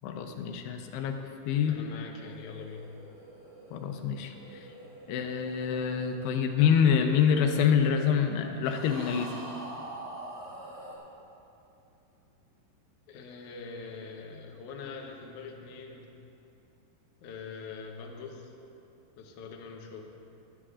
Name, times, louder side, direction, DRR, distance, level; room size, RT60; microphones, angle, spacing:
voice 1, 0.0-1.2 1.5-1.8 3.7-4.7 5.1-9.3, left 7 dB, 90° left, 5 dB, 2.9 m, -26 dB
voice 2, 1.7-2.8 13.1-16.1 17.2-18.5 19.2-20.0, left 5 dB, 70° left, 1 dB, 2.0 m, -43 dB
sound 1, 2.0-7.6 8.6-11.0, right 1 dB, 20° right, 2.3 m, -46 dB
22.5 x 9.6 x 2.5 m, 2.8 s
omnidirectional pair, 4.7 m